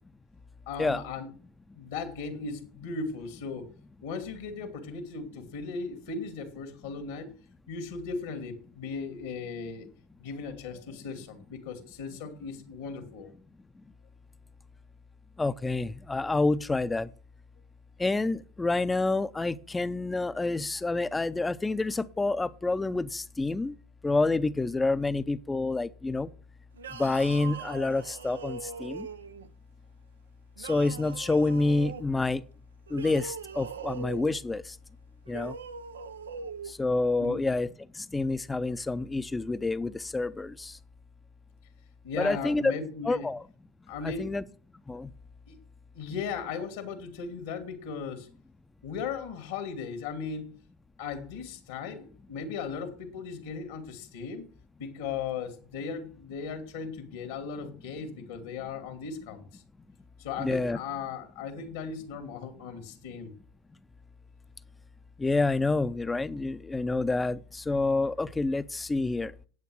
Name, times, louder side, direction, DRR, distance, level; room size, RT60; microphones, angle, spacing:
voice 1, 0.7-1.3 1.7-3.7 4.0-7.3 7.7-9.9 10.2-13.3 37.2-37.4 42.0-43.3 43.9-44.3 45.5-45.6 45.9-48.3 48.8-50.5 51.0-54.4 54.8-59.6 60.2-63.3, left 5 dB, 75° left, 2.0 m, -37 dB
voice 2, 15.4-17.1 18.0-23.7 24.0-26.3 27.0-29.1 30.6-32.4 32.9-34.6 35.3-35.5 36.8-37.7 38.1-40.7 42.2-42.7 43.0-43.4 44.0-44.4 44.9-45.1 60.4-60.8 65.2-69.5, left 3 dB, 15° left, 0.6 m, -28 dB
sound 1, 26.8-29.5 30.6-32.1 32.9-34.4 35.3-36.7, right 5 dB, 90° right, 0.6 m, -41 dB
9.6 x 8.2 x 6.2 m
hypercardioid pair, 85°, 0 cm